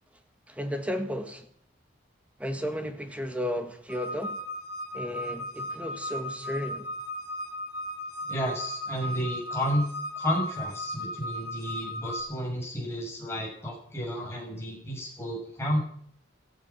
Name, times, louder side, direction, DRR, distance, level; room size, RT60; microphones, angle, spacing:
voice 1, 0.5-1.5 2.4-4.4 4.9-6.9, equal, 5° right, 1.9 m, -33 dB
sound 1, 3.9-12.2, left 1 dB, 55° left, 2.2 m, -36 dB
voice 2, 8.3-9.9 10.2-15.8, equal, 15° left, 6.8 m, -31 dB
15.5 x 14.5 x 6.0 m
head